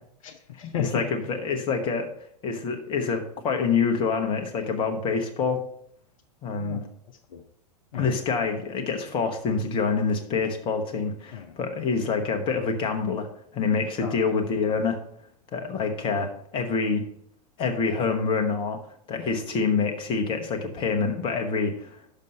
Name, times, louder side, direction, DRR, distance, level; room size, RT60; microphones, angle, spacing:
voice 1, 0.2-1.1 6.5-7.4 7.9-8.1 11.3-11.6 14.0-14.2, left 9 dB, 55° left, 5 dB, 0.7 m, -34 dB
voice 2, 0.9-2.1 2.4-5.6 6.4-6.8 7.9-15.0 15.5-17.0 17.6-18.8 19.1-22.0, left 5 dB, 25° left, 4 dB, 1.1 m, -26 dB
6.6 x 5.4 x 6.4 m, 0.69 s
figure-of-eight pair, 95°, 20 cm